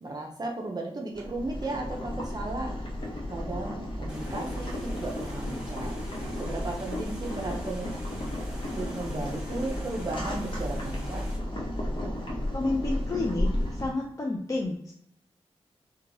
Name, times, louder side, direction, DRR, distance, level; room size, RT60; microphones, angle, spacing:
voice 1, 0.0-2.8 3.3-6.1 6.4-7.9 8.8-11.3, right 2 dB, 40° right, 0 dB, 0.5 m, -35 dB
Boiling, 1.1-13.9, left 1 dB, 45° left, 0.8 m, -33 dB
sound 1, 4.1-11.4, equal, 5° right, 1.1 m, -45 dB
voice 2, 12.5-14.9, left 2 dB, 30° left, 0 dB, 0.4 m, -30 dB
2.9 x 2.2 x 2.6 m, 0.71 s
wide cardioid pair, 90°, 11 cm